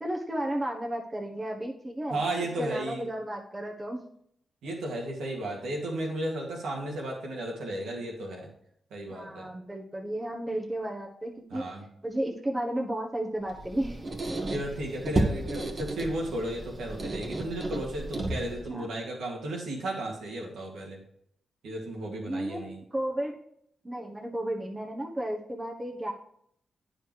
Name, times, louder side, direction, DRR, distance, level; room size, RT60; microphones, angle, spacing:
voice 1, 0.0-2.2 2.6-4.0 9.1-11.6 12.0-14.1 18.7-18.9 22.3-23.4 23.8-26.1, right 1 dB, 25° right, 0 dB, 1.3 m, -33 dB
voice 2, 2.1-3.0 4.6-8.5 8.9-9.5 11.5-11.8 14.5-21.0 21.6-22.8, right 1 dB, 85° right, -1 dB, 2.1 m, -34 dB
Squeak, 13.5-18.7, right 2 dB, 40° right, 1.6 m, -33 dB
8.9 x 5.0 x 4.7 m, 0.70 s
supercardioid pair, 45°, 0 cm